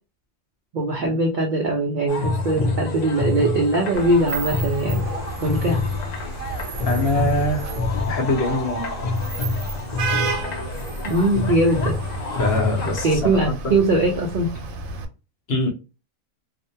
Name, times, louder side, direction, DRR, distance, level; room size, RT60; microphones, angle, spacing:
voice 1, 0.7-5.0 5.4-5.8 11.0-12.0 13.0-14.5, right 2 dB, 65° right, 0.5 m, -21 dB
sound 1, 2.1-13.2, left 3 dB, 75° left, 0.4 m, -27 dB
Vehicle horn car horn honking / Traffic noise roadway noise, 3.9-15.1, right 3 dB, 85° right, 1.0 m, -32 dB
voice 2, 6.8-7.7 8.1-8.9 12.4-13.3 13.6-13.7 15.5-15.7, left 1 dB, 55° left, 0.8 m, -23 dB
2.4 x 2.1 x 2.6 m
omnidirectional pair, 1.4 m